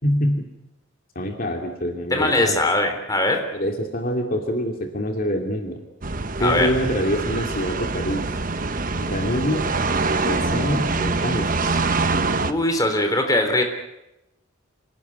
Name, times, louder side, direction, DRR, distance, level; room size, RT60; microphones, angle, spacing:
voice 1, 0.0-0.5 1.1-2.6 3.5-5.8 6.4-8.3 9.0-9.7 10.2-11.8, equal, 45° left, 3 dB, 2.6 m, -25 dB
voice 2, 2.1-3.4 6.4-6.7 12.4-13.6, left 1 dB, 20° left, 5 dB, 3.6 m, -21 dB
sound 1, 6.0-12.5, right 3 dB, 40° right, 1.1 m, -24 dB
26.5 x 18.0 x 9.6 m, 0.95 s
head